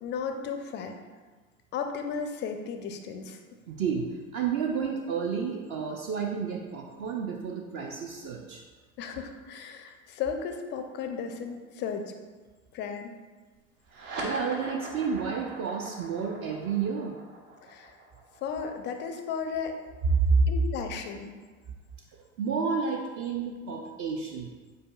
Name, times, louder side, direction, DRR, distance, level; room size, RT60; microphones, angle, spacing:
voice 1, 0.0-0.9 1.7-3.4 9.0-12.1 12.7-13.1 17.6-18.0 18.4-19.8 20.5-21.4, left 6 dB, 25° left, 6 dB, 0.4 m, -34 dB
voice 2, 3.7-8.6 13.9-17.2 20.1-20.4 22.4-24.5, right 5 dB, 35° right, 1 dB, 0.4 m, -30 dB
sound 1, 13.8-20.7, right 2 dB, 70° right, 1.1 m, -41 dB
5.1 x 4.2 x 2.2 m, 1.4 s
figure-of-eight pair, 75°, 41 cm